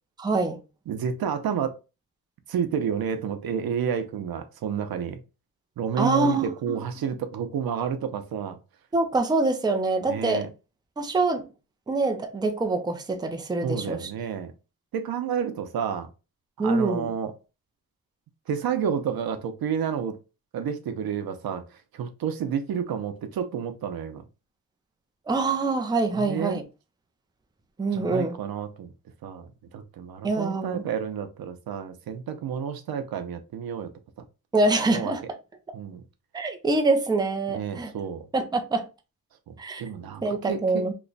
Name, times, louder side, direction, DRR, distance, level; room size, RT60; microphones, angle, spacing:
voice 1, 0.2-0.6 6.0-6.8 8.9-10.4 11.0-11.4 11.9-14.1 16.6-17.1 25.3-26.6 27.8-28.4 30.2-30.8 34.5-35.2 36.3-37.9 38.3-38.9 39.6-39.8 40.2-40.9, right 3 dB, 10° right, 0.5 m, -25 dB
voice 2, 0.9-1.8 2.5-5.2 5.8-8.6 10.1-10.5 13.6-14.5 14.9-16.1 16.6-17.3 18.5-20.2 20.5-21.6 21.9-24.2 26.1-26.6 27.9-28.9 29.2-29.5 29.7-33.9 34.8-35.1 35.7-36.0 37.5-38.2 39.5-40.9, right 7 dB, 85° right, 0.6 m, -30 dB
3.1 x 2.1 x 3.8 m
wide cardioid pair, 125°, 35 cm